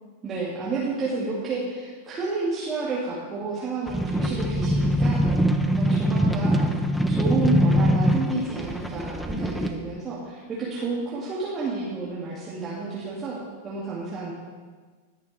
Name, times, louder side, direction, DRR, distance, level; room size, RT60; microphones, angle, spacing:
voice 1, 0.2-5.3 5.7-6.7 7.1-14.3, right 3 dB, 25° right, -8 dB, 2.3 m, -30 dB
sound 1, 3.9-9.7, equal, 5° left, 0.8 m, -23 dB
19.0 x 6.6 x 3.4 m, 1.5 s
figure-of-eight pair, 90°, 0 cm